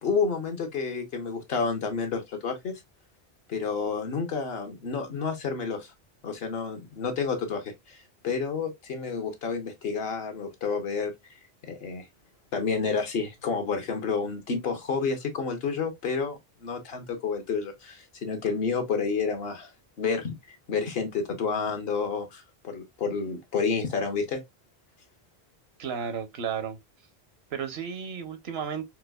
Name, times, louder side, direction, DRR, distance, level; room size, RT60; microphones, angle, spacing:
voice 1, 0.0-2.8 3.5-5.9 6.2-11.1 11.6-12.0 12.5-19.7 20.0-20.3 20.7-24.4, left 5 dB, 70° left, 1.1 m, -30 dB
voice 2, 25.8-26.8 27.5-28.8, right 7 dB, 75° right, 1.0 m, -33 dB
4.4 x 2.3 x 2.2 m
omnidirectional pair, 1.1 m